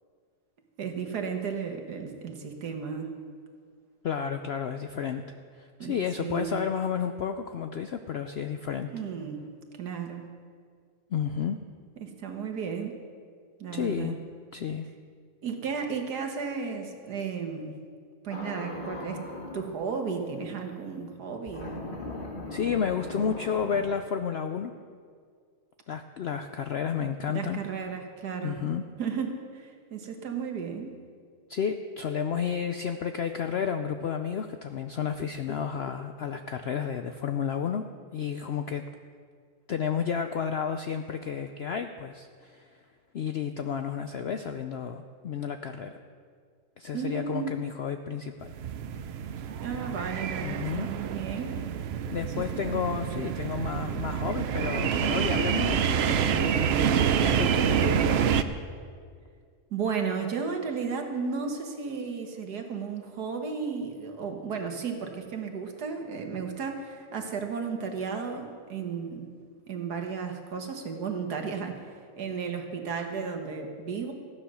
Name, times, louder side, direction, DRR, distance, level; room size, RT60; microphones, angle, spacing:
voice 1, 0.8-3.1 5.8-6.6 8.9-9.4 9.8-10.2 12.0-13.0 13.6-14.2 15.4-17.7 18.2-19.2 19.5-21.8 27.3-28.6 29.0-31.0 46.9-47.5 49.6-51.6 52.3-52.4 59.7-69.3 69.7-71.9 72.2-74.1, right 6 dB, 80° right, 4 dB, 1.9 m, -34 dB
voice 2, 4.0-5.2 5.6-8.9 11.1-11.6 13.7-14.2 14.5-14.9 22.5-24.7 25.9-27.6 28.4-28.8 31.5-37.9 38.1-38.8 39.7-42.7 43.1-46.0 46.8-48.5 50.4-50.9 52.1-56.9 57.2-58.4, left 7 dB, 70° left, 7 dB, 0.6 m, -31 dB
sound 1, 18.3-19.7 21.5-23.8, left 2 dB, 35° left, 1.7 m, -38 dB
sound 2, 48.4-58.4, right 8 dB, 65° right, 0.6 m, -27 dB
15.0 x 9.8 x 6.2 m, 2.1 s
omnidirectional pair, 1.7 m